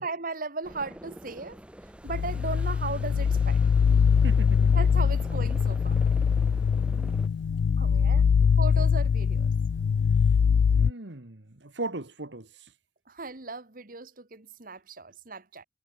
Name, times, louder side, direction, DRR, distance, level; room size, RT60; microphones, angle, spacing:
voice 1, 0.0-1.6 2.0-3.6 4.7-6.0 7.8-8.2 8.6-9.5 13.1-15.6, right 3 dB, 50° right, 1.9 m, -36 dB
sound 1, 0.6-7.3, equal, 5° right, 1.3 m, -46 dB
sound 2, 2.1-10.9, left 6 dB, 75° left, 0.3 m, -23 dB
voice 2, 4.2-4.7 7.8-8.6 10.7-12.7, right 2 dB, 75° right, 2.0 m, -39 dB
head